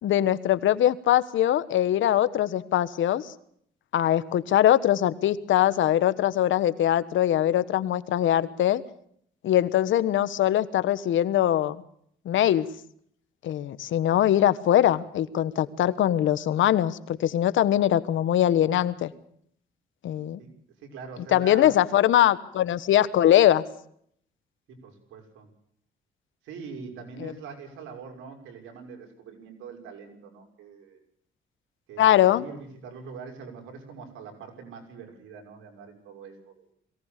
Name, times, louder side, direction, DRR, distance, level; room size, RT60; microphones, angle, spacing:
voice 1, 0.0-3.2 3.9-8.8 9.4-11.8 12.2-12.7 13.4-19.1 20.0-20.4 21.3-23.6 27.2-27.3 32.0-32.5, left 12 dB, 75° left, 15 dB, 1.3 m, -22 dB
voice 2, 20.8-21.8 24.7-25.5 26.4-31.0 31.9-36.7, right 5 dB, 90° right, 2 dB, 6.1 m, -43 dB
22.5 x 18.0 x 6.7 m, 0.67 s
cardioid pair, 90°, 20 cm